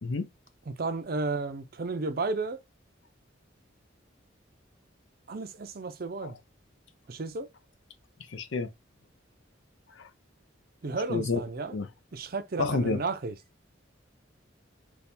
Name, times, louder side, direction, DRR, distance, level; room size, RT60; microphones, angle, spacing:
voice 1, 0.7-2.6 5.3-6.4 7.1-7.5 10.8-11.7 12.1-13.3, right 3 dB, 50° right, 0.5 m, -33 dB
voice 2, 8.3-8.7 10.0-10.1 11.1-11.4 11.7-11.9 12.6-13.0, left 3 dB, 70° left, 0.6 m, -29 dB
3.4 x 2.3 x 4.2 m
head